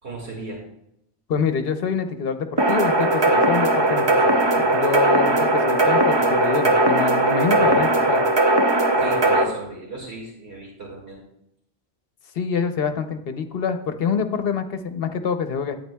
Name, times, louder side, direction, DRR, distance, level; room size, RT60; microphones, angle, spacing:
voice 1, 0.0-0.6 7.5-7.8 8.9-11.2, right 2 dB, 75° right, -2 dB, 2.3 m, -36 dB
voice 2, 1.3-4.2 4.6-8.2 12.3-15.8, left 6 dB, 65° left, 8 dB, 0.9 m, -26 dB
sound 1, 2.6-9.4, right 2 dB, 30° right, 0.5 m, -19 dB
11.0 x 8.7 x 2.2 m, 0.76 s
omnidirectional pair, 1.1 m